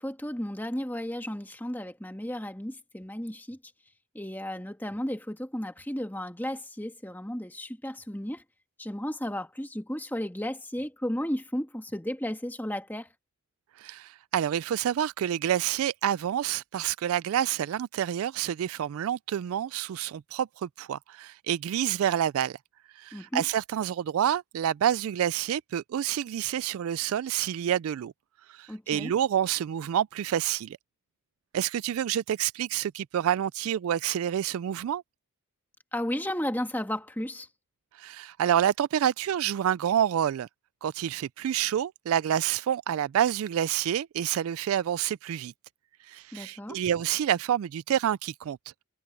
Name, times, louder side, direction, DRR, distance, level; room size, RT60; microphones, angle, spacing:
voice 1, 0.0-3.6 4.2-8.4 8.8-13.1 23.1-23.4 28.7-29.1 35.9-37.5 46.3-46.8, left 1 dB, 10° left, 1.7 m, -34 dB
voice 2, 13.8-22.6 23.0-28.1 28.5-30.8 31.5-35.0 38.0-40.5 40.8-45.5 46.1-48.6, right 10 dB, 80° right, 0.3 m, -28 dB
head